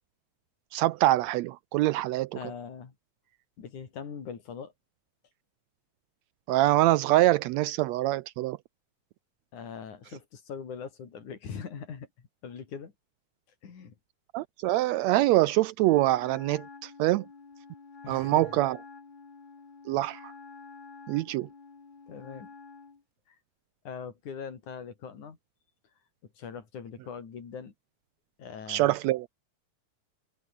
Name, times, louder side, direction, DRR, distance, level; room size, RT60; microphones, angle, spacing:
voice 1, 0.7-2.3 6.5-8.6 14.3-17.2 18.1-18.8 19.9-20.3 21.1-21.5 28.7-29.3, right 16 dB, 80° right, 1.7 m, -24 dB
voice 2, 2.3-2.9 3.6-4.7 9.5-12.9 13.6-13.9 18.0-18.5 22.1-22.5 23.3-23.4 23.8-25.4 26.4-27.7 28.4-29.0, left 6 dB, 90° left, 4.8 m, -41 dB
Wind instrument woodwind instrument, 15.8-23.0, left 4 dB, 50° left, 0.5 m, -49 dB
omnidirectional pair, 3.4 m